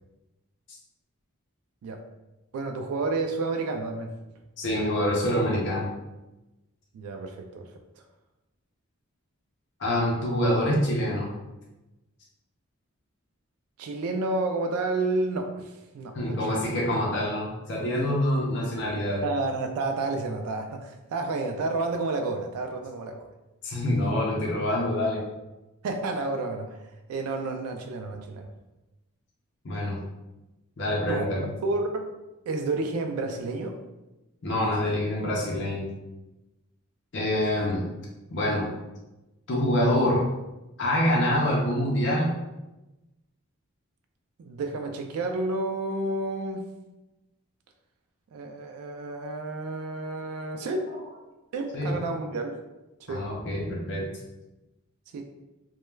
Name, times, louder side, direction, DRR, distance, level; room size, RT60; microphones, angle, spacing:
voice 1, 2.5-4.1 6.9-7.7 13.8-16.6 19.2-23.3 25.8-26.8 27.1-28.5 31.1-31.3 31.6-32.1 32.5-33.8 37.5-37.7 44.4-46.7 48.3-50.9 51.5-52.6 53.0-53.3 55.1-55.2, right 3 dB, 80° right, 4 dB, 0.3 m, -30 dB
voice 2, 4.6-5.9 9.8-11.3 16.1-19.2 23.6-25.2 29.6-30.0 30.8-31.5 34.4-35.9 37.1-37.9 38.3-38.7 39.5-40.2 40.8-42.3 51.7-51.9 53.1-54.0, left 1 dB, 55° left, -3 dB, 0.5 m, -26 dB
2.2 x 2.1 x 3.1 m, 1.0 s
head